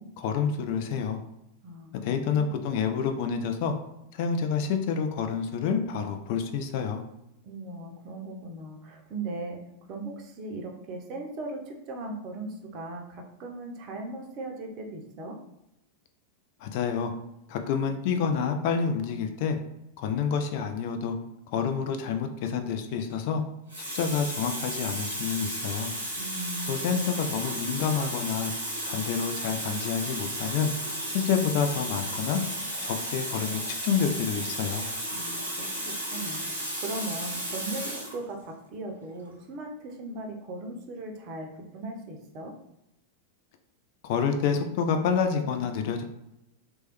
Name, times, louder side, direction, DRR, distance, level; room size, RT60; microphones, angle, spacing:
voice 1, 0.2-1.2 2.0-3.7 4.1-7.0 16.6-17.1 17.5-19.6 20.0-21.2 21.5-23.4 23.9-25.9 26.7-28.5 28.9-30.7 31.1-32.4 32.8-34.9 44.0-46.0, left 6 dB, 45° left, 5 dB, 0.3 m, -28 dB
voice 2, 1.6-2.6 7.4-9.6 9.9-15.4 26.2-27.1 35.1-42.5, right 2 dB, 40° right, 2 dB, 0.6 m, -38 dB
Water tap faucet, 22.9-23.1 23.7-38.2 39.1-39.3, right 1 dB, 90° left, 0.9 m, -34 dB
3.0 x 2.1 x 3.0 m, 0.88 s
figure-of-eight pair, 90°, 0 cm